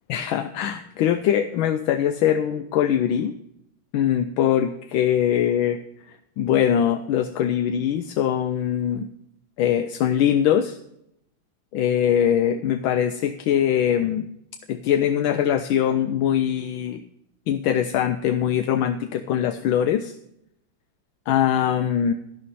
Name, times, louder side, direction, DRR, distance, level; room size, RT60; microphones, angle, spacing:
voice 1, 0.1-3.3 3.9-9.1 9.6-10.8 11.7-14.3 14.7-17.0 17.5-20.1 21.3-22.1, left 9 dB, 80° left, 9 dB, 1.4 m, -22 dB
11.5 x 11.0 x 4.2 m, 0.77 s
omnidirectional pair, 2.2 m